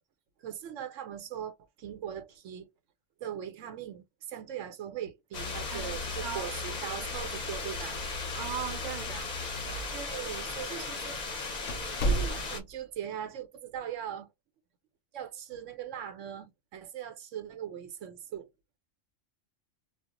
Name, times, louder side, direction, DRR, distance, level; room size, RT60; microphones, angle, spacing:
voice 1, 0.4-2.7 3.2-8.0 9.9-11.6 12.0-14.3 15.1-18.5, right 9 dB, 90° right, 1.0 m, -40 dB
sound 1, 5.3-12.6, left 3 dB, 40° left, 0.8 m, -36 dB
voice 2, 5.7-6.5 8.3-9.3, right 10 dB, 50° right, 0.6 m, -39 dB
sound 2, 10.6-10.7 11.0-11.1 11.7-12.8, right 1 dB, 80° left, 0.9 m, -32 dB
2.3 x 2.0 x 3.7 m
omnidirectional pair, 1.3 m